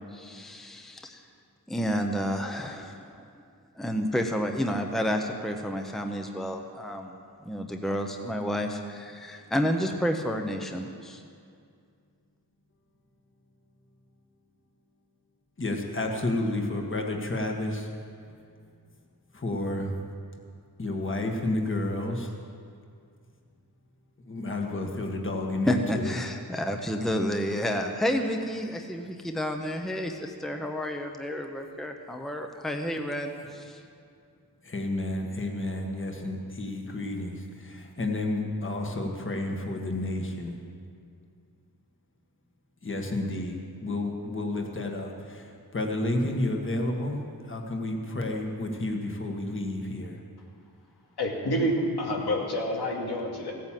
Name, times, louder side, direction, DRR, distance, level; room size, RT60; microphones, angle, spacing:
voice 1, 0.1-1.2 1.7-3.2 3.8-7.1 7.4-11.2 25.7-33.8, equal, ahead, 4 dB, 0.9 m, -30 dB
voice 2, 15.6-17.9 19.3-20.0 20.8-22.3 24.3-26.2 33.4-33.5 34.6-40.6 42.8-50.2, left 2 dB, 30° left, 2 dB, 1.6 m, -31 dB
voice 3, 51.2-53.5, equal, 80° left, -1 dB, 2.5 m, -28 dB
16.5 x 9.3 x 7.5 m, 2.3 s
wide cardioid pair, 115°, 39 cm